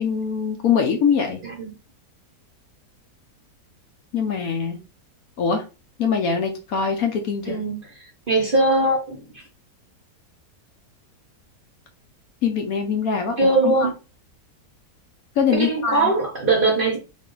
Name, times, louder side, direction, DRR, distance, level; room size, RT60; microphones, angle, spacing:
voice 1, 0.0-1.4 4.1-4.8 5.4-5.6 6.0-7.6 12.4-13.9 15.4-16.1, left 6 dB, 65° left, 1.1 m, -23 dB
voice 2, 7.5-7.8 8.3-9.4 13.4-13.9 15.5-17.0, right 2 dB, 40° right, 0.8 m, -21 dB
3.5 x 2.7 x 3.8 m
omnidirectional pair, 1.8 m